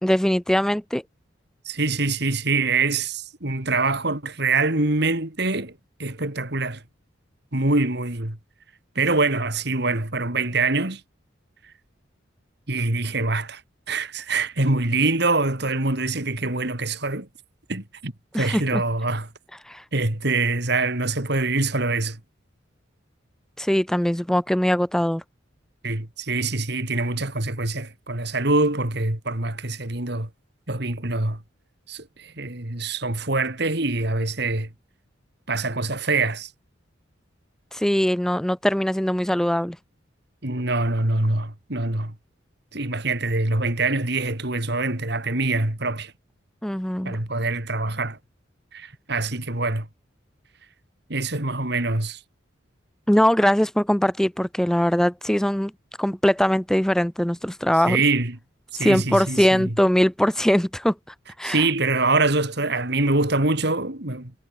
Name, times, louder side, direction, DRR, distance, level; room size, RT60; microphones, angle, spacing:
voice 1, 0.0-1.0 18.3-18.8 19.7-19.8 23.6-25.2 37.7-39.8 46.6-47.2 53.1-55.7 56.0-58.0 58.8-60.9 61.4-61.7, equal, 5° left, 0.4 m, -21 dB
voice 2, 1.6-5.7 6.0-6.8 7.5-8.4 8.9-11.0 12.7-13.6 13.9-17.3 17.7-19.3 19.9-22.2 25.8-30.3 30.7-31.4 31.9-34.7 35.5-36.5 40.4-42.1 42.7-46.1 47.0-48.2 48.7-49.9 51.1-52.2 57.8-58.4 58.7-59.7 61.4-64.3, right 3 dB, 55° right, 2.9 m, -24 dB
head